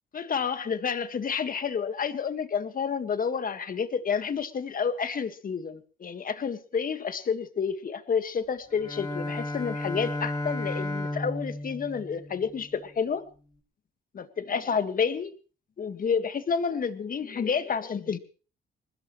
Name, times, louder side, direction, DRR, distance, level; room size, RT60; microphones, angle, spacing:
voice 1, 0.1-13.2 14.1-15.3 15.8-18.2, left 6 dB, 45° left, 10 dB, 1.8 m, -29 dB
Bowed string instrument, 8.7-12.8, left 1 dB, 20° left, 6.1 m, -34 dB
22.0 x 20.0 x 3.2 m, 0.39 s
cardioid pair, 90°, 20 cm